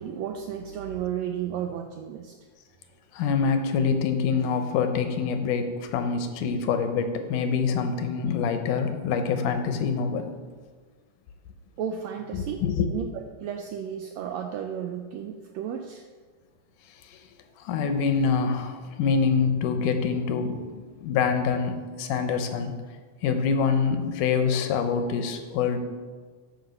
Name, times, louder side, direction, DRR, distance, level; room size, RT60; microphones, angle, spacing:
voice 1, 0.0-2.4 11.8-12.6 12.9-16.0, right 9 dB, 85° right, 4 dB, 1.5 m, -33 dB
voice 2, 3.1-10.3 12.3-12.9 17.6-22.7 23.2-25.8, left 6 dB, 90° left, 7 dB, 2.4 m, -25 dB
9.2 x 4.9 x 6.6 m, 1.5 s
omnidirectional pair, 3.6 m